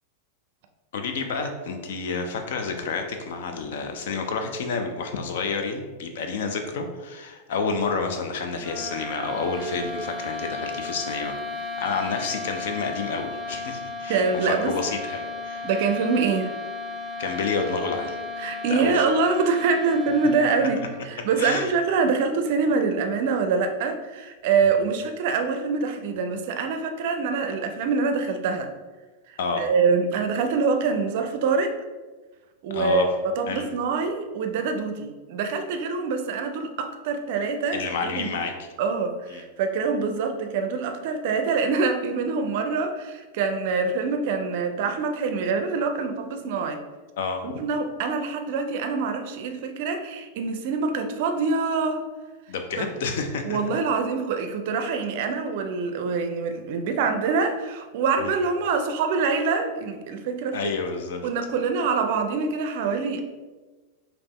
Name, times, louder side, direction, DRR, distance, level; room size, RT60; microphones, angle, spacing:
voice 1, 0.9-15.7 17.2-18.2 18.7-19.0 20.6-20.7 21.4-21.7 29.4-29.7 32.7-33.1 33.5-33.7 37.7-38.5 39.3-39.4 47.2-47.4 52.5-53.6 58.2-58.3 60.5-61.3, left 4 dB, 55° left, 5 dB, 0.5 m, -29 dB
sound 1, 8.6-21.3, left 3 dB, ahead, 0.8 m, -35 dB
voice 2, 14.1-14.7 15.6-16.5 18.4-20.8 21.1-28.7 29.3-31.7 32.6-38.3 38.8-46.8 47.4-52.0 52.8-52.9 53.5-60.7 61.2-63.2, right 4 dB, 50° right, 6 dB, 0.5 m, -25 dB
5.1 x 2.9 x 3.1 m, 1.3 s
figure-of-eight pair, 90°, 0 cm